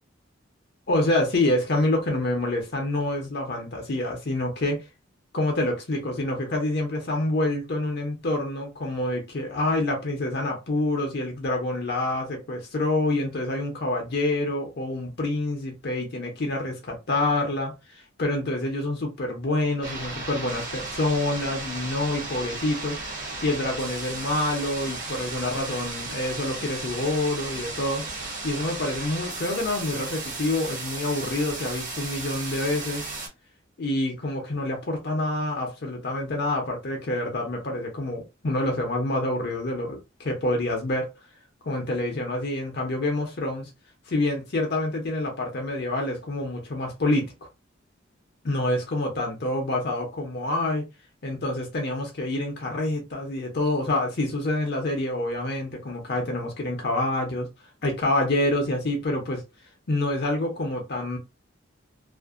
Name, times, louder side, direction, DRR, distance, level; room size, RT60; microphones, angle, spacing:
voice 1, 0.9-4.8 5.3-17.7 18.2-23.0 23.4-28.1 28.4-33.1 33.8-41.1 41.6-43.7 44.1-47.3 48.4-50.9 51.2-57.5 57.8-59.4 59.9-61.2, left 2 dB, 55° left, 0.6 m, -27 dB
sound 1, 19.8-33.3, right 3 dB, 45° right, 0.9 m, -35 dB
2.5 x 2.1 x 2.4 m
head